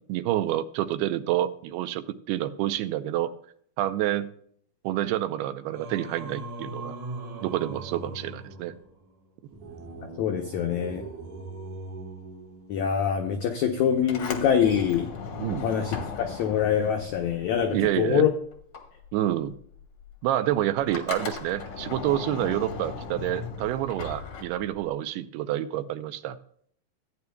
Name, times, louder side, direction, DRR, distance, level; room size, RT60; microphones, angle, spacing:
voice 1, 0.1-3.3 3.8-4.3 4.8-7.0 7.4-8.7 15.4-15.7 17.7-18.3 19.1-19.6 20.2-26.4, right 13 dB, 90° right, 12 dB, 2.6 m, -28 dB
Singing, 5.7-13.1, right 2 dB, 60° right, 2.3 m, -40 dB
voice 2, 10.2-11.1 12.7-15.1 15.6-18.3, left 8 dB, 90° left, 4 dB, 1.6 m, -25 dB
Sliding door, 14.0-18.2 18.5-24.9, left 5 dB, 65° left, 1.3 m, -37 dB
15.5 x 9.5 x 2.2 m, 0.63 s
omnidirectional pair, 4.5 m